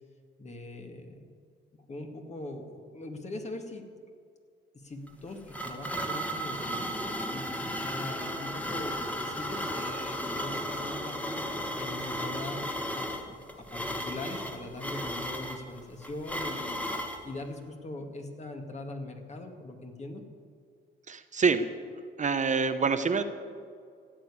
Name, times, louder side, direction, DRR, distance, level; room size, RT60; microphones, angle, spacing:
voice 1, 0.4-1.3 1.7-3.9 4.7-11.2 11.7-12.7 12.9-13.1 13.6-16.8 17.2-20.2, left 2 dB, 35° left, 4 dB, 2.2 m, -41 dB
sound 1, 5.1-17.2, equal, 5° left, 1.7 m, -35 dB
voice 2, 21.1-21.7 22.2-23.2, right 5 dB, 40° right, 9 dB, 0.9 m, -26 dB
15.0 x 9.2 x 8.7 m, 2.1 s
cardioid pair, 90°, 20 cm